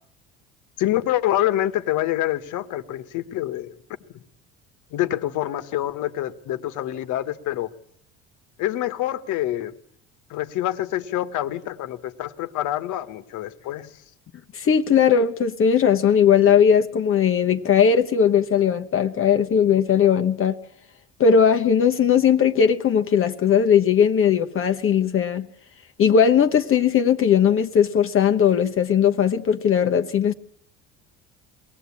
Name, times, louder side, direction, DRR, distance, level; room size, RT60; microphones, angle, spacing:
voice 1, 0.8-3.7 4.9-7.7 8.6-9.7 10.3-13.9, left 13 dB, 65° left, 1.5 m, -26 dB
voice 2, 14.5-20.6 21.2-25.5 26.0-30.3, left 7 dB, 40° left, 1.1 m, -18 dB
22.5 x 17.5 x 8.6 m
supercardioid pair, 95°, 32 cm